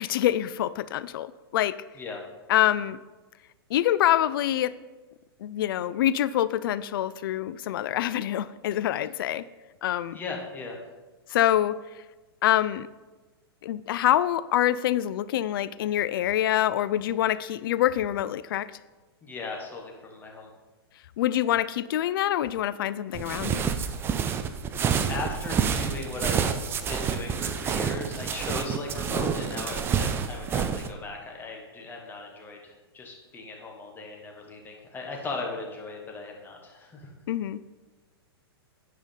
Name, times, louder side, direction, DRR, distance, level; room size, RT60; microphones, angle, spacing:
voice 1, 0.0-1.8 2.5-3.0 3.7-4.7 5.4-9.5 9.8-10.2 11.3-11.8 12.4-12.9 13.6-18.7 21.2-23.7 37.3-37.6, left 12 dB, 60° left, 17 dB, 0.4 m, -25 dB
voice 2, 10.1-10.8 19.2-20.5 25.1-26.5 26.9-37.1, left 3 dB, 15° left, 0 dB, 1.5 m, -37 dB
sound 1, 23.1-30.9, right 7 dB, 15° right, 0.5 m, -28 dB
9.9 x 5.1 x 5.5 m, 1.2 s
hypercardioid pair, 140°, 13 cm